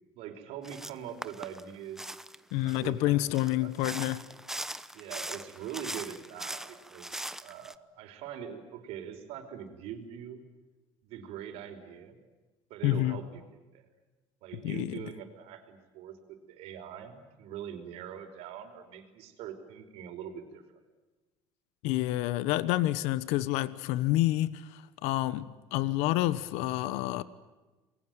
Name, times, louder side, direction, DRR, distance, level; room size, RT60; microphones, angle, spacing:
voice 1, 0.1-2.1 2.6-3.7 4.9-10.4 11.0-12.2 12.7-13.4 13.7-13.9 14.4-20.6, right 9 dB, 70° right, 5.0 m, -43 dB
sound 1, 0.6-0.9 1.2-2.9 3.3-7.7, right 1 dB, 5° right, 0.9 m, -41 dB
voice 2, 2.5-4.2 12.8-13.2 14.6-15.0 21.8-27.2, left 16 dB, 85° left, 1.2 m, -28 dB
28.5 x 22.0 x 9.2 m
cardioid pair, 130°, 11 cm